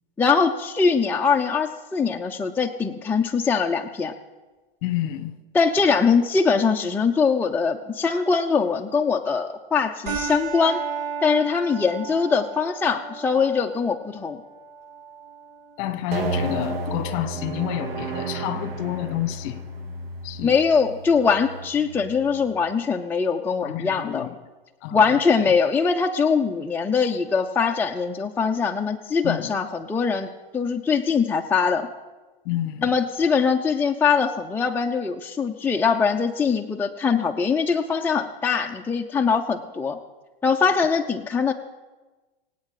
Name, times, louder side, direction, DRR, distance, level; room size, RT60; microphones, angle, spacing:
voice 1, 0.2-4.1 5.5-10.8 11.2-14.4 20.4-24.3 24.9-31.9 32.8-40.0 40.4-41.5, left 5 dB, 5° left, 2 dB, 0.6 m, -22 dB
voice 2, 4.8-5.3 15.8-19.6 20.2-20.6 23.6-24.4 24.8-25.1 29.2-29.5 32.4-32.9, left 13 dB, 45° left, 13 dB, 1.2 m, -29 dB
sound 1, 10.1-19.0, right 5 dB, 55° right, 6.0 m, -36 dB
sound 2, 16.1-22.6, right 2 dB, 85° right, 3.1 m, -32 dB
24.5 x 8.5 x 4.9 m, 1.2 s
hypercardioid pair, 115°, 29 cm